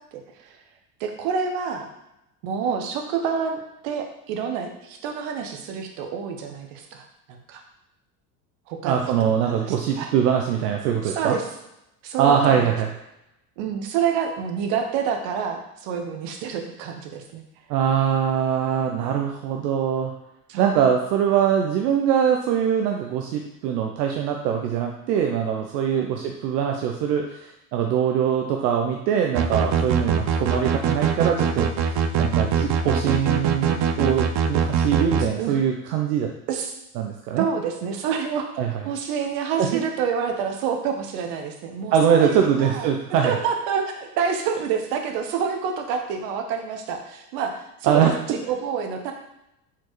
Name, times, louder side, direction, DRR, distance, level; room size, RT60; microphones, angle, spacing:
voice 1, 0.1-0.6 1.0-1.9 2.4-7.6 8.7-10.1 11.0-11.5 12.0-12.8 13.6-17.4 20.5-21.0 25.9-26.1 29.3-29.6 33.7-33.9 35.2-35.5 36.5-36.7 37.4-38.5 38.8-42.9 43.2-49.1, right 6 dB, 65° right, 4 dB, 1.0 m, -28 dB
voice 2, 8.8-11.4 12.2-12.9 17.7-20.1 20.6-36.3 37.0-37.5 38.6-38.7 39.6-39.8 41.9-43.4 47.8-48.1, right 8 dB, 80° right, 2 dB, 0.7 m, -22 dB
sound 1, 29.3-35.3, right 7 dB, 40° right, 0.4 m, -22 dB
4.4 x 4.0 x 3.1 m, 0.85 s
supercardioid pair, 100°, 47 cm